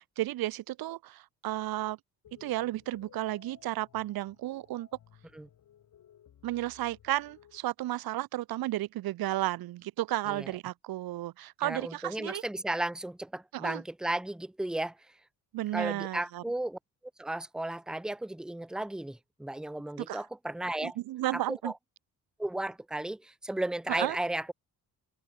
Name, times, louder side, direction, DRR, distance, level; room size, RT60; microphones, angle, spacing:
voice 1, 0.0-2.0 2.4-4.9 6.4-12.4 13.5-13.8 15.5-16.4 20.0-20.2 20.8-21.7 23.9-24.2, right 15 dB, 75° right, 1.0 m, -33 dB
sound 1, 2.2-7.6, left 10 dB, 60° left, 4.5 m, -59 dB
voice 2, 11.6-14.9 15.7-16.8 17.2-21.0 21.3-21.7 22.4-24.5, right 1 dB, ahead, 0.9 m, -34 dB
open air
cardioid pair, 105°, 36 cm